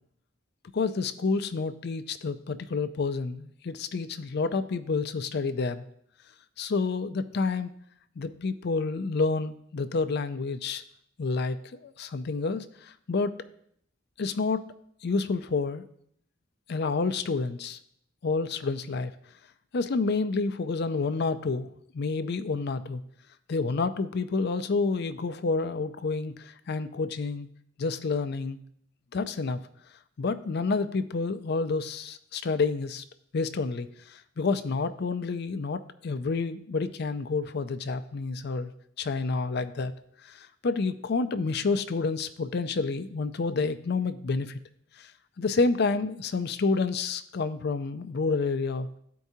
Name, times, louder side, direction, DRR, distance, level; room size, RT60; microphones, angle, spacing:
voice 1, 0.7-5.8 6.6-7.7 8.2-10.8 11.2-13.3 14.2-14.6 15.0-15.8 16.7-17.8 18.2-19.1 19.7-23.0 23.5-27.5 27.8-28.6 29.1-29.6 30.2-33.0 33.3-38.7 39.0-39.9 40.2-44.6 45.0-45.1 45.4-48.9, left 4 dB, 55° left, 11 dB, 0.4 m, -29 dB
13.5 x 4.6 x 2.7 m, 0.69 s
head